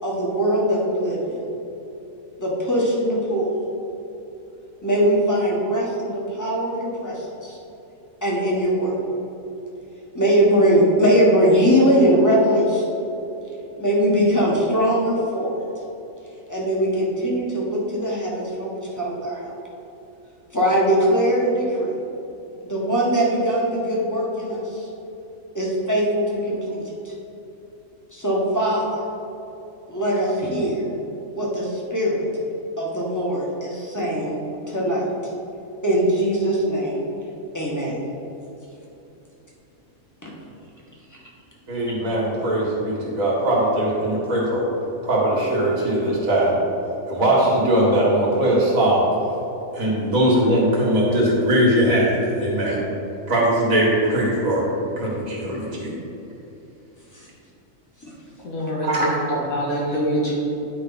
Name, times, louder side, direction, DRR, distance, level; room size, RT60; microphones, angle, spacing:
voice 1, 0.0-1.4 2.4-3.5 4.8-7.6 8.2-8.9 10.1-12.8 13.8-15.5 16.5-19.5 20.5-21.9 22.6-24.9 25.5-27.1 28.1-28.9 29.9-30.8 31.3-32.2 32.8-34.4 34.7-35.0 35.8-37.0 37.5-38.0 40.2-40.3 57.1-57.3 58.0-58.1, equal, 15° left, -5 dB, 1.4 m, -21 dB
voice 2, 41.7-44.7 45.0-46.6 47.1-49.1 49.7-52.8 53.3-54.6 55.0-55.9 58.8-59.1, right 1 dB, 75° right, -5 dB, 2.2 m, -20 dB
voice 3, 58.4-60.3, equal, 85° left, -5 dB, 2.3 m, -25 dB
10.0 x 5.1 x 4.1 m, 3.0 s
omnidirectional pair, 1.4 m